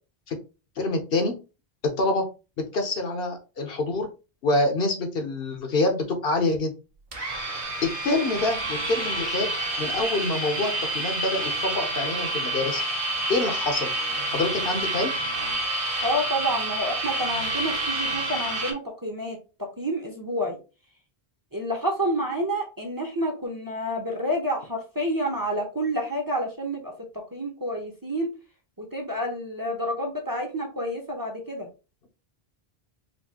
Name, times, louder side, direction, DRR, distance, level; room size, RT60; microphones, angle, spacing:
voice 1, 0.8-1.3 1.8-2.3 2.6-4.1 4.4-6.7 7.8-9.5 9.8-12.8 13.3-13.9 14.3-15.1, left 2 dB, 65° left, 4 dB, 1.0 m, -26 dB
sound 1, 7.1-18.7, right 2 dB, 60° right, 1.2 m, -28 dB
voice 2, 16.0-20.6 21.5-28.3 28.8-31.7, equal, 20° right, 1 dB, 0.8 m, -29 dB
4.4 x 2.5 x 2.8 m, 0.30 s
omnidirectional pair, 1.0 m